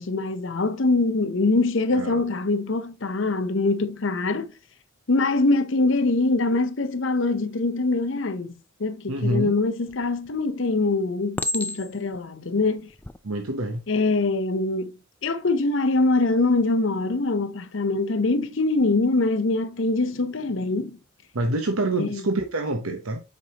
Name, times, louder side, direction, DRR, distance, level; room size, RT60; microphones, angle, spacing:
voice 1, 0.0-4.5 5.1-8.5 8.8-12.9 13.9-14.9 15.2-21.0 22.0-22.2, left 3 dB, 60° left, 0.7 m, -23 dB
voice 2, 1.9-2.3 9.1-9.5 13.2-13.8 21.3-23.2, right 1 dB, 80° right, 1.0 m, -26 dB
Chink clink, 9.9-10.4 11.4-12.2 12.9-13.2, left 2 dB, 10° left, 0.3 m, -30 dB
7.8 x 5.4 x 2.9 m
head